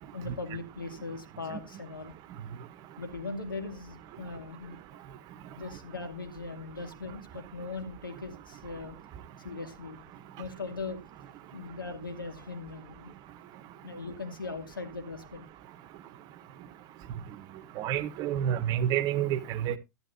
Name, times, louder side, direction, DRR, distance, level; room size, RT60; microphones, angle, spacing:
voice 1, 0.1-2.2 3.0-5.0 5.6-9.0 9.4-10.0 10.4-11.0 11.5-13.1 13.8-15.4, left 3 dB, 85° left, 2.3 m, -39 dB
voice 2, 17.8-19.8, right 10 dB, 35° right, 0.9 m, -28 dB
11.0 x 11.0 x 2.7 m
hypercardioid pair, 105°, 11 cm